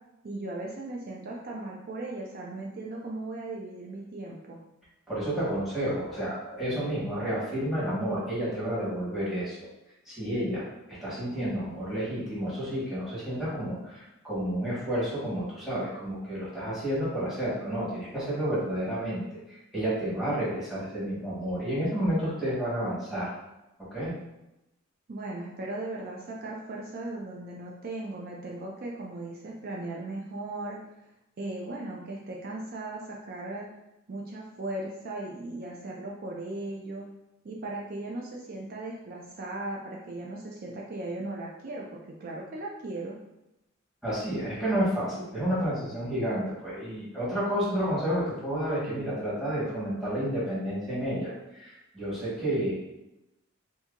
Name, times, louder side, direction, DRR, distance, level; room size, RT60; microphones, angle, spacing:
voice 1, 0.2-4.6 25.1-30.8 31.4-33.7 34.1-37.0 37.4-43.2, right 2 dB, 45° right, -2 dB, 0.4 m, -37 dB
voice 2, 5.1-9.6 10.1-10.6 11.0-19.2 19.5-23.3 23.9-24.1 44.0-52.7, equal, ahead, -9 dB, 1.3 m, -30 dB
2.8 x 2.7 x 3.6 m, 0.93 s
head